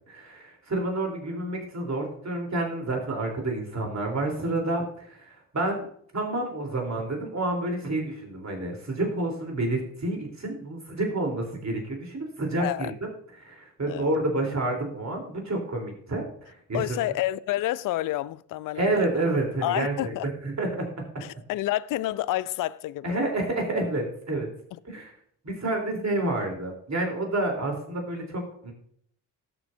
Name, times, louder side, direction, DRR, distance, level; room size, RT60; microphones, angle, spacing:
voice 1, 0.1-4.8 5.1-5.9 6.1-13.1 13.4-16.2 16.7-17.0 18.7-20.9 23.0-24.5 24.8-25.1 25.4-28.7, right 2 dB, 35° right, 3.5 m, -29 dB
voice 2, 12.6-12.9 13.9-14.1 16.7-19.1 19.6-20.3 21.2-23.2, left 15 dB, 45° left, 0.5 m, -29 dB
17.5 x 6.9 x 2.6 m
hypercardioid pair, 40°, 48 cm